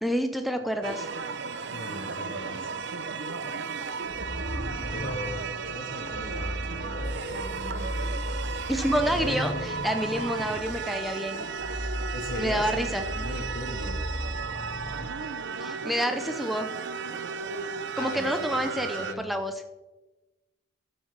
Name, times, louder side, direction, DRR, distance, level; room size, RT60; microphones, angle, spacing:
voice 1, 0.0-1.1 8.7-11.4 12.4-13.0 15.6-16.7 18.0-19.5, equal, ahead, 6 dB, 0.6 m, -28 dB
sound 1, 0.8-19.1, right 5 dB, 55° right, 0.7 m, -35 dB
voice 2, 1.7-2.8 4.9-8.2 12.1-14.0 17.9-19.3, left 1 dB, 45° left, 5 dB, 1.4 m, -39 dB
sound 2, 4.1-15.1, equal, 30° left, 1.0 m, -36 dB
11.5 x 7.3 x 6.0 m, 1.1 s
head